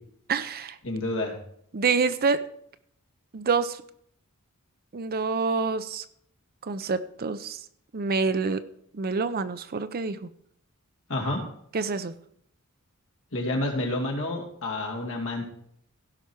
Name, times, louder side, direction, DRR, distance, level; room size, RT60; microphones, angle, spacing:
voice 1, 0.3-0.8 1.7-2.4 3.3-3.8 4.9-6.0 6.6-7.6 7.9-8.6 8.9-10.3 11.7-12.1, right 4 dB, 45° right, 12 dB, 0.6 m, -27 dB
voice 2, 0.8-1.4 11.1-11.4 13.3-15.4, left 1 dB, 65° left, 1 dB, 2.8 m, -29 dB
16.5 x 5.7 x 4.6 m, 0.67 s
head